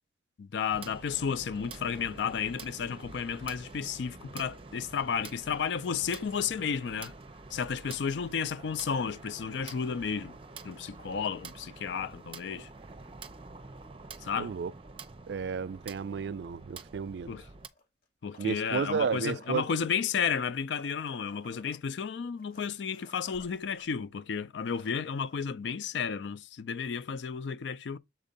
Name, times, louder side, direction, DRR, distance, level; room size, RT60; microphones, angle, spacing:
voice 1, 0.4-7.1 7.5-10.3 10.6-12.7 14.2-14.5 17.3-17.4 18.2-28.0, left 6 dB, 75° left, 0.4 m, -32 dB
sound 1, 0.7-17.7, right 3 dB, 30° right, 0.6 m, -47 dB
voice 2, 14.4-14.7 15.3-17.3 18.4-19.7, right 6 dB, 65° right, 0.3 m, -32 dB
sound 2, 17.6-19.5 20.2-23.9 24.2-24.3 24.6-25.4 26.9-27.0, left 1 dB, 55° left, 1.8 m, -55 dB
7.4 x 2.6 x 5.1 m
head